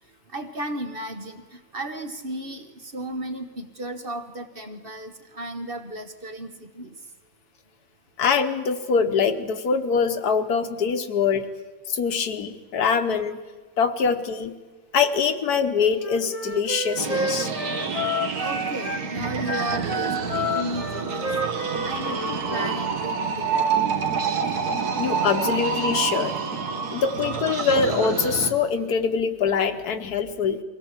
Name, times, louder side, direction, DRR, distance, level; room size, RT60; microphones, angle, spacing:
voice 1, 0.3-7.0 18.4-21.3 21.8-23.7, right 1 dB, 40° right, 6 dB, 1.2 m, -34 dB
voice 2, 8.2-11.5 11.9-13.4 13.8-14.5 14.9-17.5 25.0-26.4 26.9-30.6, left 6 dB, 75° left, 8 dB, 1.6 m, -23 dB
Wind instrument woodwind instrument, 16.0-19.0 19.4-22.8, left 1 dB, 25° left, 1.2 m, -30 dB
sound 1, 17.0-28.5, right 6 dB, 75° right, 1.9 m, -28 dB
23.0 x 17.0 x 7.3 m, 1.4 s
omnidirectional pair, 1.7 m